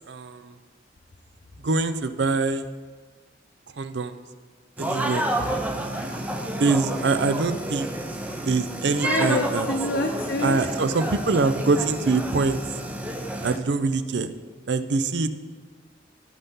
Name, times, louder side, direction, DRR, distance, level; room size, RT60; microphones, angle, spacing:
voice 1, 0.1-0.6 1.6-2.6 3.8-4.2 4.8-5.3 6.6-7.9 8.4-9.7 10.4-12.6 13.4-14.3 14.7-15.3, right 3 dB, 65° right, 11 dB, 0.5 m, -24 dB
sound 1, 4.8-13.6, right 1 dB, 10° right, 0.6 m, -30 dB
voice 2, 5.4-6.2 8.3-8.4 9.0-10.7, left 2 dB, 70° left, 1 dB, 0.7 m, -28 dB
16.0 x 5.6 x 3.7 m, 1.4 s
head